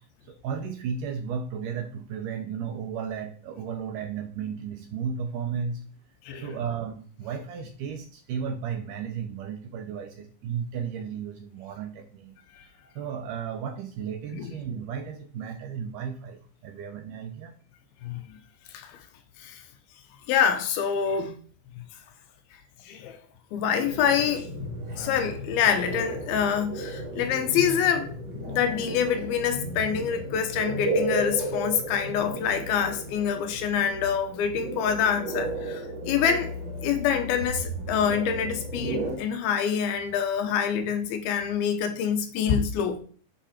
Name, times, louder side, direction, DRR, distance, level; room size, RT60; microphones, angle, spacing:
voice 1, 0.3-5.8 6.3-12.4 13.0-17.5, right 7 dB, 70° right, 2.1 m, -34 dB
voice 2, 20.3-21.3 22.9-23.2 23.5-24.5 25.0-28.1 28.4-36.5 36.8-43.0, left 7 dB, 80° left, 2.7 m, -26 dB
sound 1, 23.8-39.2, right 1 dB, 45° right, 1.4 m, -34 dB
10.0 x 5.2 x 4.3 m
omnidirectional pair, 4.5 m